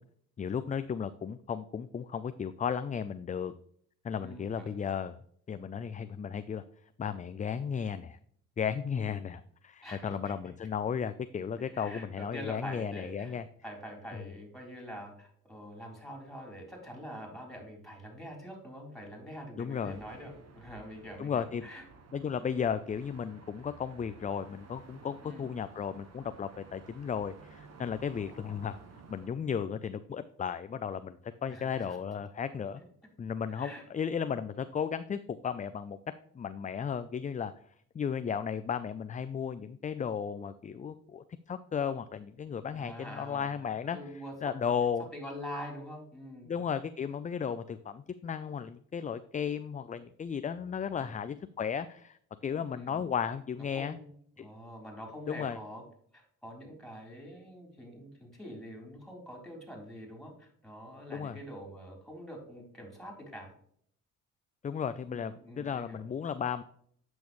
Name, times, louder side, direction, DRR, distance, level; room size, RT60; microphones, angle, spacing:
voice 1, 0.4-3.5 4.0-5.2 5.5-6.6 7.0-8.2 8.6-13.4 14.1-14.3 19.6-20.0 21.2-21.7 22.1-28.8 29.1-32.8 33.2-36.0 36.3-37.5 37.9-44.0 44.4-45.1 46.4-52.2 52.4-54.0 54.4-54.5 55.3-55.6 61.1-61.4 64.6-66.6, left 7 dB, 25° left, 12 dB, 0.4 m, -34 dB
voice 2, 4.1-4.8 9.8-10.3 11.7-21.8 25.2-25.5 31.5-32.0 32.8-32.9 33.6-33.8 42.7-43.7 43.9-44.5 45.1-46.5 51.0-51.1 52.7-53.1 53.7-54.1 54.4-55.8 56.1-63.5 65.1-66.0, equal, ahead, 1 dB, 3.7 m, -45 dB
sound 1, 19.7-29.3, right 4 dB, 50° right, 1.3 m, -54 dB
8.4 x 6.2 x 3.1 m, 0.62 s
supercardioid pair, 70°, 32 cm